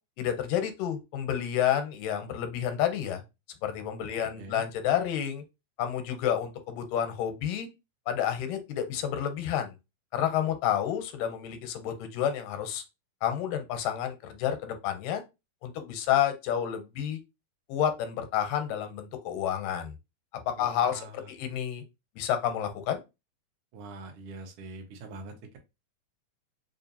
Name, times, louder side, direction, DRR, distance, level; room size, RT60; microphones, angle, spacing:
voice 1, 0.2-3.2 3.6-5.4 5.8-7.7 8.1-9.7 10.1-12.8 13.2-15.2 15.6-17.2 17.7-19.9 20.5-21.0 21.3-21.8 22.2-23.0, left 10 dB, 85° left, 2.2 m, -29 dB
voice 2, 4.1-4.6 20.6-21.3 23.7-25.6, right 3 dB, 80° right, 1.2 m, -44 dB
5.0 x 2.5 x 2.7 m
omnidirectional pair, 3.8 m